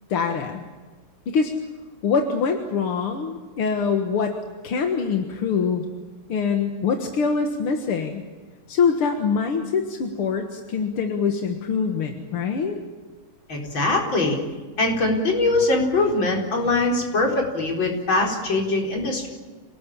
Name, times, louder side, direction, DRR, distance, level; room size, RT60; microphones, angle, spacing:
voice 1, 0.1-0.6 1.3-1.5 2.0-4.4 4.6-5.8 6.3-8.2 8.7-12.8, left 5 dB, 85° left, 4 dB, 2.5 m, -24 dB
voice 2, 13.5-14.4 14.8-19.3, left 2 dB, 60° left, 1 dB, 5.1 m, -22 dB
27.5 x 18.5 x 8.7 m, 1.3 s
omnidirectional pair, 2.4 m